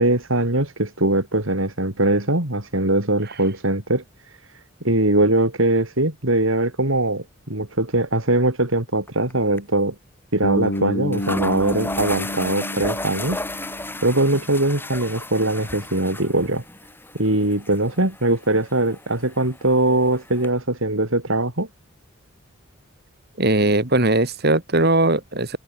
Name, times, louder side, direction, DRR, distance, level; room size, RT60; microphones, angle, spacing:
voice 1, 0.0-4.0 4.8-9.9 10.3-13.7 14.0-16.6 17.1-21.7, right 2 dB, 70° right, 4.4 m, -21 dB
sound 1, 9.1-9.3 9.6-9.7 10.7-10.8 11.1-20.5, left 2 dB, 10° left, 6.7 m, -34 dB
Bass guitar, 10.4-14.4, left 1 dB, 45° left, 4.0 m, -29 dB
voice 2, 23.4-25.6, right 2 dB, 50° right, 2.7 m, -19 dB
head